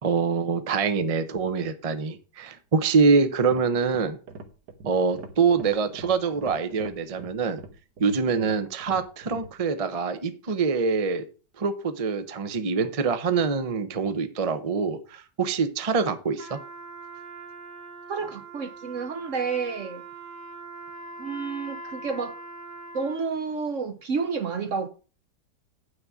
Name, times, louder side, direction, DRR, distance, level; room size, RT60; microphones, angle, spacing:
voice 1, 0.0-4.2 4.8-7.6 8.0-11.2 11.6-16.6, right 5 dB, 30° right, 0.7 m, -25 dB
sound 1, 3.1-9.6, right 4 dB, 70° right, 1.8 m, -43 dB
Trumpet, 16.3-23.4, right 2 dB, 10° right, 1.2 m, -42 dB
voice 2, 18.1-20.0 21.2-22.4 22.9-24.9, right 5 dB, 55° right, 1.0 m, -30 dB
8.9 x 6.4 x 6.2 m
omnidirectional pair, 1.9 m